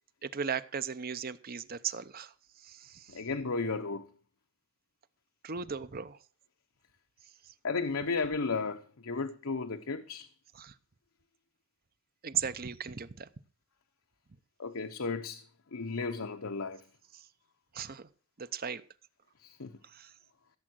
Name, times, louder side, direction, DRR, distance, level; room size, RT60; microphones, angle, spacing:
voice 1, 0.2-3.2 5.4-6.2 7.4-7.5 10.5-10.8 12.2-13.3 17.1-17.3 17.7-18.1 18.4-18.8 19.8-20.1, right 7 dB, 45° right, 0.7 m, -37 dB
voice 2, 3.1-4.1 7.6-10.3 14.6-15.4 15.7-16.8 19.4-19.7, left 4 dB, 75° left, 0.9 m, -34 dB
15.5 x 7.6 x 6.3 m
head